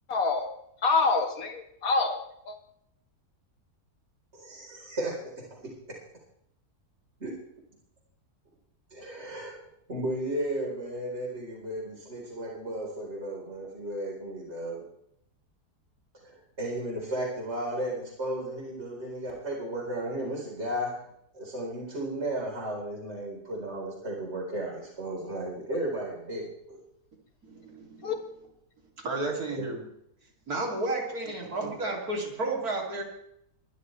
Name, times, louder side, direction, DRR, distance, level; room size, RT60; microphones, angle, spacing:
voice 1, 0.1-0.5 0.8-2.2 2.5-2.6 28.0-28.2, left 4 dB, 60° left, 4 dB, 2.2 m, -26 dB
voice 2, 4.3-5.1 7.2-7.3 8.9-9.6 9.9-14.8 16.2-21.0 21.3-26.8, right 1 dB, 40° right, -3 dB, 4.4 m, -34 dB
voice 3, 27.4-28.1 29.0-29.8 30.5-33.0, right 2 dB, 65° right, 1 dB, 3.4 m, -32 dB
23.5 x 12.5 x 3.3 m, 0.75 s
omnidirectional pair, 1.7 m